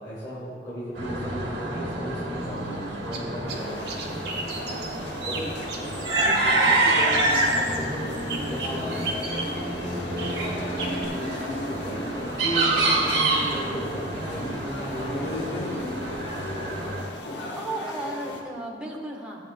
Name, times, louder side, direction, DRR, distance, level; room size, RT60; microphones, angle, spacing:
voice 1, 0.0-5.5 5.7-9.7 11.8-15.6, right 1 dB, 25° left, -10 dB, 2.2 m, -36 dB
sound 1, 1.0-17.0, right 2 dB, 90° right, 1.5 m, -27 dB
sound 2, 2.4-11.1, right 3 dB, 65° right, 1.2 m, -37 dB
sound 3, 3.5-18.4, left 1 dB, 75° left, 1.1 m, -37 dB
voice 2, 10.8-11.2 17.5-19.5, right 1 dB, 5° right, -2 dB, 1.1 m, -35 dB
14.0 x 8.3 x 2.2 m, 2.1 s
head